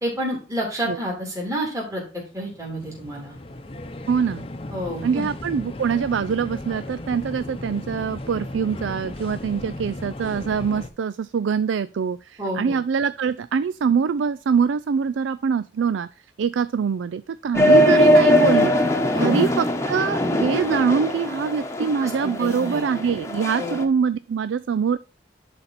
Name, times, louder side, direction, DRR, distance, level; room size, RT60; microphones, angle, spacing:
voice 1, 0.0-2.0 2.3-3.4 4.7-5.2 12.4-12.8 19.1-19.5 22.0-22.9 23.6-23.8, equal, 20° right, -3 dB, 3.1 m, -29 dB
sound 1, 2.3-10.9, left 1 dB, 30° left, 0.7 m, -36 dB
voice 2, 4.1-4.5 5.0-16.1 16.4-18.7 19.2-25.0, right 6 dB, 90° right, 15 dB, 0.4 m, -24 dB
sound 2, 17.5-23.8, equal, 15° left, 1.1 m, -20 dB
11.0 x 4.2 x 4.1 m, 0.36 s
head